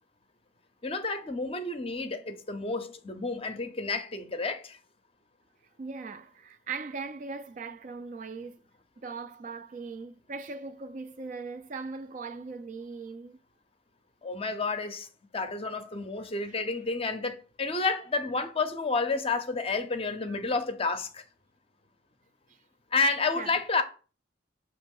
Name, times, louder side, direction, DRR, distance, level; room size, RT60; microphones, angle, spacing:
voice 1, 0.8-4.8 14.2-15.1 15.3-21.2 22.9-23.8, left 3 dB, 30° left, 0.6 m, -30 dB
voice 2, 5.8-8.6 9.0-13.4 16.5-16.6 23.4-23.5, right 4 dB, 40° right, 0.3 m, -39 dB
6.3 x 2.9 x 5.3 m
head